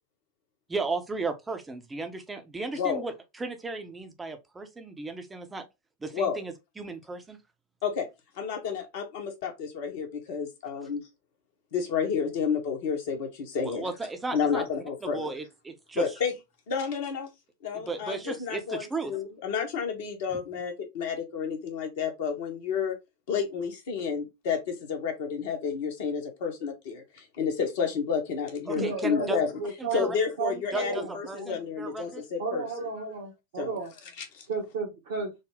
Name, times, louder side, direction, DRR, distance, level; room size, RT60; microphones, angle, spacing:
voice 1, 0.7-5.6 6.0-7.4 13.6-14.6 15.0-16.1 17.7-19.1 20.3-20.4 28.7-29.4 29.8-30.2 30.7-32.2, right 3 dB, 10° right, 0.7 m, -35 dB
voice 2, 2.7-3.0 6.1-6.4 7.8-8.1 8.3-11.1 11.7-13.9 14.3-15.3 15.9-16.3 16.7-17.3 17.6-23.0 23.3-29.5 29.9-32.7 33.6-33.8 34.2-34.5, left 6 dB, 50° left, 1.1 m, -31 dB
voice 3, 28.7-31.5 32.4-33.9 34.5-35.3, right 4 dB, 55° right, 1.0 m, -33 dB
3.9 x 2.1 x 3.5 m
figure-of-eight pair, 90°, 0 cm